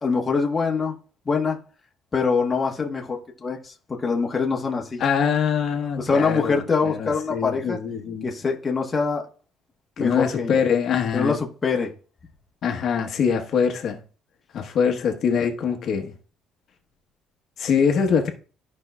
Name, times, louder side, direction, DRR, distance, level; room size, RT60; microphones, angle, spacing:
voice 1, 0.0-1.0 1.3-1.6 2.1-5.0 6.0-7.8 8.2-9.2 10.0-10.6 11.1-11.9, left 4 dB, 20° left, 1.0 m, -24 dB
voice 2, 5.0-8.3 10.0-11.4 12.6-14.0 14.5-16.1 17.6-18.3, left 6 dB, 45° left, 1.0 m, -23 dB
13.0 x 5.3 x 2.2 m
cardioid pair, 165°, 0 cm